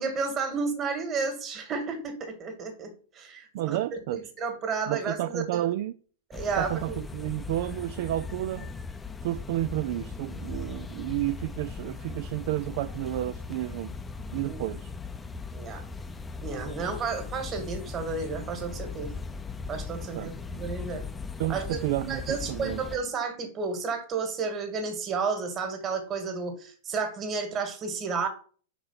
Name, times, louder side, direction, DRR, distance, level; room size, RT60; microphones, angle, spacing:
voice 1, 0.0-3.8 4.1-5.7 6.3-7.0 14.5-14.6 15.5-15.8 16.4-19.1 19.7-21.0 21.5-28.3, right 4 dB, 30° right, 2.0 m, -32 dB
voice 2, 3.5-4.2 4.9-5.9 6.6-8.7 9.2-13.9 14.3-14.9 20.1-20.3 21.4-22.8, right 15 dB, 55° right, 0.3 m, -31 dB
sound 1, 6.3-23.0, left 4 dB, 15° left, 0.6 m, -39 dB
5.2 x 4.6 x 5.7 m
hypercardioid pair, 105°, 0 cm